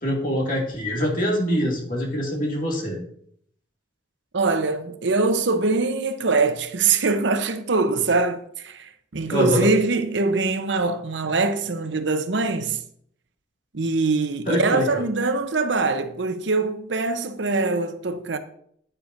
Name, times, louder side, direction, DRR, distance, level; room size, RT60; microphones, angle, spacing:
voice 1, 0.0-3.0 9.3-9.7 14.5-15.0, equal, 45° left, 2.0 m, -24 dB
voice 2, 4.3-12.8 13.7-18.4, right 3 dB, 80° right, 0.8 m, -23 dB
9.6 x 8.8 x 2.6 m
head